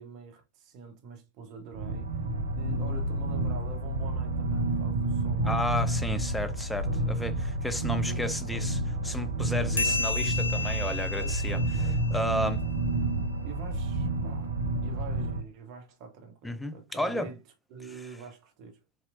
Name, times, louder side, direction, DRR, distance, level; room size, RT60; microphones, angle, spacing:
voice 1, 0.0-2.3 2.5-5.6 6.1-6.2 6.9-8.9 9.7-10.0 11.1-12.5 13.4-14.6 14.8-17.4 17.7-18.8, right 4 dB, 40° right, 0.9 m, -45 dB
sound 1, 1.7-15.4, right 2 dB, 70° right, 0.5 m, -30 dB
voice 2, 5.4-8.8 9.0-11.6 12.1-12.6 16.4-17.3, left 1 dB, 5° left, 0.4 m, -32 dB
sound 2, 9.8-12.8, left 4 dB, 75° left, 0.7 m, -33 dB
4.0 x 2.9 x 2.5 m
figure-of-eight pair, 90°, 0 cm